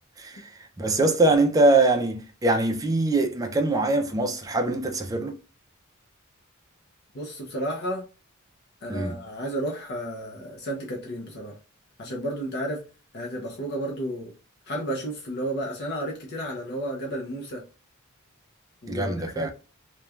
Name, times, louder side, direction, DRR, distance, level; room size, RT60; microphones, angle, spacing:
voice 1, 0.2-5.3 8.9-9.2 18.9-19.5, right 2 dB, 15° right, 0.3 m, -23 dB
voice 2, 7.1-8.0 8.8-11.6 12.0-12.8 13.1-14.3 14.7-17.6 18.8-19.5, right 1 dB, 50° left, 0.6 m, -32 dB
3.1 x 2.2 x 2.3 m
head